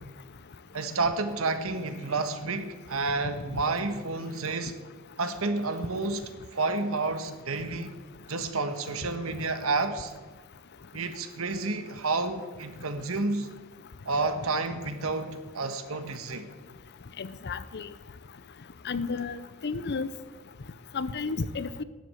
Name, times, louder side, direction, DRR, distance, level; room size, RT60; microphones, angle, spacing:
voice 1, 0.7-4.7 5.2-7.9 8.3-10.1 10.9-13.5 14.0-16.5, right 3 dB, 75° right, 9 dB, 1.4 m, -30 dB
voice 2, 17.2-17.9 18.8-20.1 20.9-21.8, left 4 dB, 55° left, 15 dB, 0.7 m, -32 dB
12.0 x 7.9 x 9.2 m, 1.4 s
head